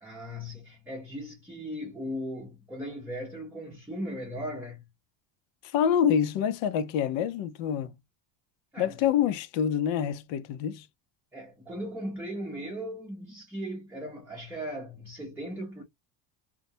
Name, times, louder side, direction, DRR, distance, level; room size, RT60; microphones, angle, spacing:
voice 1, 0.0-4.8 8.7-9.0 11.3-15.8, equal, 5° right, 0.6 m, -38 dB
voice 2, 5.6-7.9 8.8-10.9, left 8 dB, 65° left, 0.6 m, -26 dB
2.2 x 2.1 x 2.6 m
cardioid pair, 150°, 49 cm